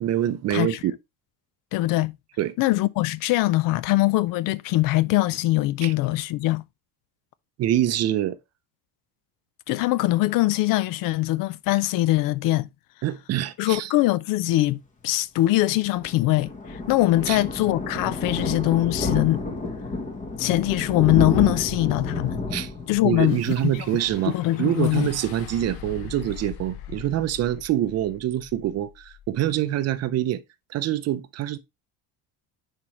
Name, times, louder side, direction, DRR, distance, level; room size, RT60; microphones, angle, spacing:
voice 1, 0.0-0.9 2.4-2.5 5.8-5.9 7.6-8.4 13.0-13.9 17.3-17.4 22.5-22.7 23.0-30.4 30.7-31.6, right 12 dB, 40° right, 0.6 m, -25 dB
voice 2, 1.7-2.2 2.6-6.6 9.7-12.7 13.6-19.4 20.4-22.4 22.9-23.4 24.3-25.1, left 17 dB, 55° left, 0.5 m, -22 dB
Thunder, 15.7-25.1 25.4-25.6 25.9-26.0 26.2-26.3, left 3 dB, 20° left, 1.0 m, -31 dB
sound 1, 23.2-29.6, left 9 dB, 90° left, 1.1 m, -42 dB
10.0 x 4.5 x 3.0 m
cardioid pair, 165°, 39 cm